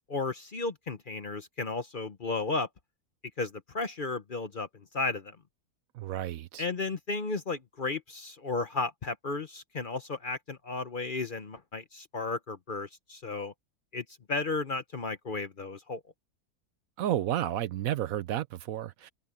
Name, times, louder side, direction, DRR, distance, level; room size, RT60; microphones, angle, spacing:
voice 1, 0.1-2.7 3.4-5.4 6.6-13.5 13.9-16.0, left 3 dB, 40° left, 0.9 m, -34 dB
voice 2, 5.9-6.6 17.0-19.1, right 12 dB, 70° right, 1.0 m, -31 dB
omnidirectional pair, 1.6 m